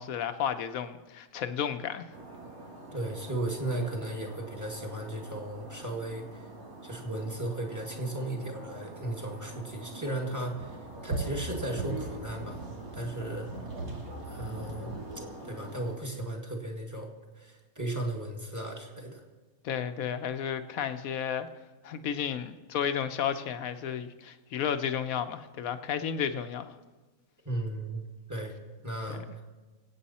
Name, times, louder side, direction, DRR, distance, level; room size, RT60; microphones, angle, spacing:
voice 1, 0.0-2.1 19.6-21.5 21.8-26.7 29.1-29.2, left 8 dB, 75° left, 10 dB, 1.2 m, -32 dB
sound 1, 2.1-16.0, right 2 dB, 85° right, 2.9 m, -41 dB
voice 2, 2.9-6.5 6.8-12.6 12.9-13.5 14.3-15.0 15.4-19.2 27.5-28.0 28.3-28.5 28.8-29.4, right 1 dB, 10° right, 1 dB, 1.8 m, -35 dB
24.0 x 8.6 x 4.2 m, 1.3 s
omnidirectional pair, 1.5 m